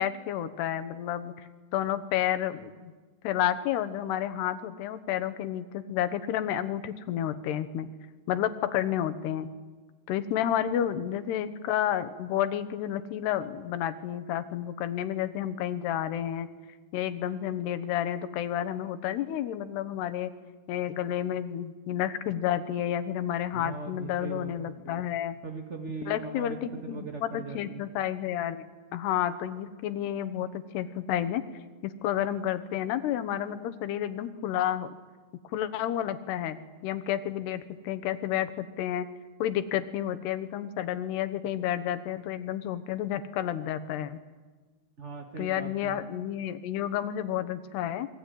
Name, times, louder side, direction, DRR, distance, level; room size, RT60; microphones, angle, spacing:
voice 1, 0.0-2.9 3.2-7.9 8.3-9.5 10.1-16.5 16.9-20.3 20.7-25.3 26.1-28.6 28.9-31.4 31.8-34.9 35.5-36.6 36.8-39.1 39.4-44.2 45.4-48.1, left 11 dB, 85° left, 11 dB, 3.3 m, -30 dB
voice 2, 23.5-24.5 24.8-25.0 25.4-27.8 45.0-46.1, right 4 dB, 60° right, 3 dB, 0.7 m, -39 dB
27.0 x 22.5 x 9.2 m, 1.4 s
omnidirectional pair, 4.6 m